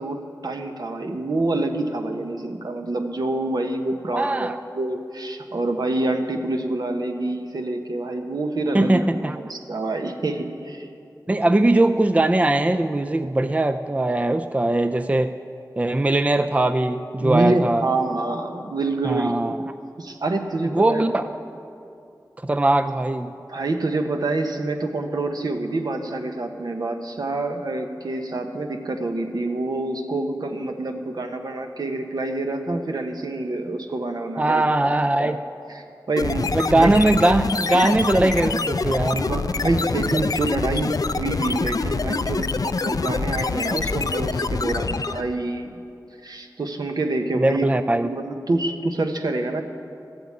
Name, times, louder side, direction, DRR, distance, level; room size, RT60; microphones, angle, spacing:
voice 1, 0.0-10.9 17.2-19.6 20.0-21.1 23.5-34.6 35.2-35.3 35.7-36.9 39.1-45.8 46.2-47.7 48.0-49.6, right 2 dB, 70° right, 4 dB, 1.1 m, -27 dB
voice 2, 4.1-4.6 8.7-9.4 11.3-15.4 15.8-17.8 19.0-19.6 20.7-21.3 22.4-23.3 34.4-35.4 36.5-39.2 47.3-48.1, right 2 dB, 20° right, 9 dB, 0.4 m, -20 dB
sound 1, 36.2-45.3, left 4 dB, 60° left, 0.4 m, -25 dB
13.0 x 7.9 x 8.5 m, 2.5 s
wide cardioid pair, 70°, 7 cm